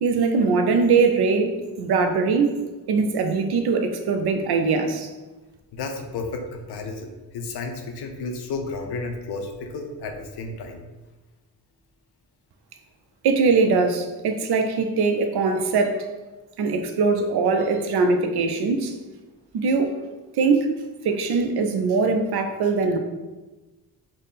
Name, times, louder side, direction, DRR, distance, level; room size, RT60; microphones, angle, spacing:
voice 1, 0.0-2.6 2.9-5.1 13.2-16.1 16.6-18.9 19.5-19.9 20.4-20.7 21.0-23.0, right 4 dB, 75° right, 6 dB, 0.5 m, -21 dB
voice 2, 5.7-10.8, left 3 dB, 85° left, 4 dB, 0.6 m, -32 dB
3.6 x 2.1 x 4.0 m, 1.2 s
cardioid pair, 110°, 38 cm